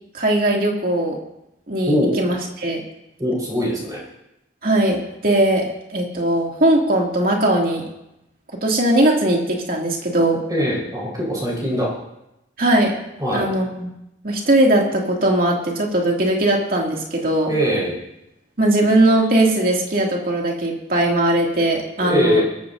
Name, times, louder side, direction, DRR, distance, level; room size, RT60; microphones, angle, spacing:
voice 1, 0.1-1.2 1.7-2.8 4.6-7.8 8.6-10.4 12.6-12.9 13.3-13.9 14.2-17.5 18.6-22.4, right 1 dB, 45° right, -1 dB, 2.6 m, -19 dB
voice 2, 1.9-2.2 3.2-4.0 10.5-11.9 13.2-13.5 17.5-17.9 22.0-22.4, equal, 20° right, -4 dB, 4.7 m, -21 dB
22.5 x 13.5 x 2.7 m, 0.86 s
head